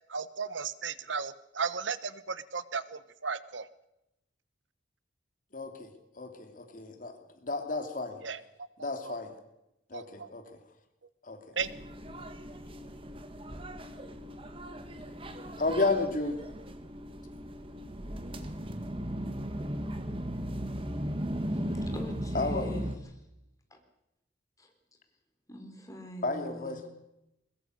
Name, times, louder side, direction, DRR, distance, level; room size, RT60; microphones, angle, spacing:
voice 1, 0.1-3.7 8.2-8.4 8.8-9.1 9.9-10.3 11.5-11.7, right 5 dB, 85° right, 16 dB, 1.1 m, -35 dB
voice 2, 5.5-7.2 7.4-8.2 8.8-9.3 9.9-10.4 11.2-11.4 15.6-16.4 22.3-22.9 26.2-26.9, left 3 dB, 45° left, 6 dB, 2.9 m, -32 dB
sound 1, 11.6-23.0, equal, 30° right, 1.8 m, -37 dB
voice 3, 21.5-22.9 23.7-23.8 24.6-24.7 25.5-26.8, left 1 dB, 20° left, 4 dB, 3.9 m, -43 dB
22.0 x 21.0 x 6.6 m, 0.88 s
head